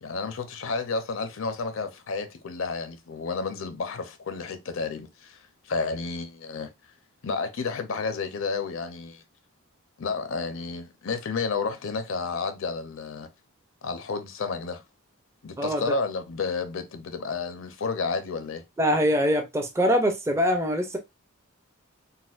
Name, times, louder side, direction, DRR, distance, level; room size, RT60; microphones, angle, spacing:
voice 1, 0.0-6.7 7.2-9.2 10.0-13.3 13.8-14.8 15.4-18.6, left 4 dB, 65° left, 0.5 m, -31 dB
voice 2, 18.8-21.0, equal, 15° right, 0.4 m, -23 dB
4.1 x 2.1 x 2.4 m
head